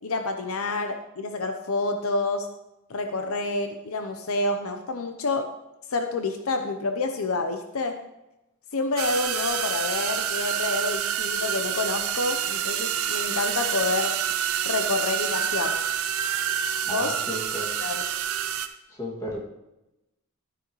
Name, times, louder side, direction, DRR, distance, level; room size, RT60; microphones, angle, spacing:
voice 1, 0.0-2.5 2.9-5.5 5.9-8.0 8.7-14.1 14.6-15.8 16.9-18.0, left 3 dB, 70° left, 6 dB, 0.8 m, -28 dB
sound 1, 9.0-18.7, right 9 dB, 70° right, 0.7 m, -28 dB
voice 2, 16.9-17.7 19.0-19.4, equal, 15° left, -3 dB, 2.2 m, -34 dB
12.5 x 9.0 x 3.1 m, 0.93 s
head